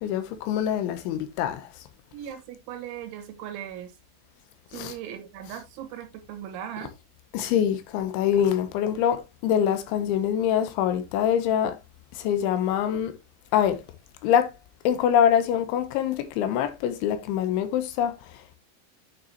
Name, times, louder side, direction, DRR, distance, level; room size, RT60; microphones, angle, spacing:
voice 1, 0.0-1.7 4.7-4.9 7.3-11.8 12.1-13.1 13.5-13.8 14.2-14.5 14.8-18.6, left 9 dB, 80° left, 3.2 m, -24 dB
voice 2, 2.1-3.9 4.7-6.9, right 10 dB, 75° right, 3.5 m, -38 dB
9.0 x 6.9 x 2.9 m
omnidirectional pair, 5.7 m